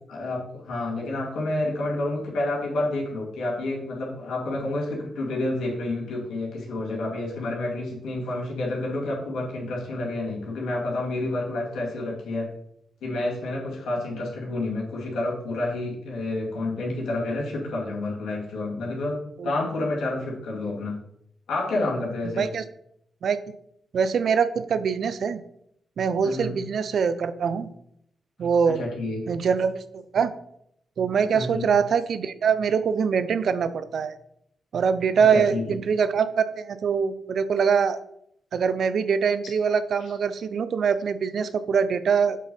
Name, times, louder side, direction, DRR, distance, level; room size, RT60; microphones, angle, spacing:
voice 1, 0.1-12.5 13.0-20.9 21.5-22.4 26.2-26.5 28.7-29.2 31.3-31.7 35.3-35.6, left 2 dB, 80° left, -3 dB, 2.4 m, -29 dB
voice 2, 23.9-25.4 26.0-27.7 28.4-28.8 29.3-30.3 31.0-34.1 34.7-38.0 38.5-42.4, right 6 dB, 70° right, 13 dB, 0.5 m, -23 dB
7.5 x 3.8 x 5.5 m, 0.73 s
supercardioid pair, 55°, 0 cm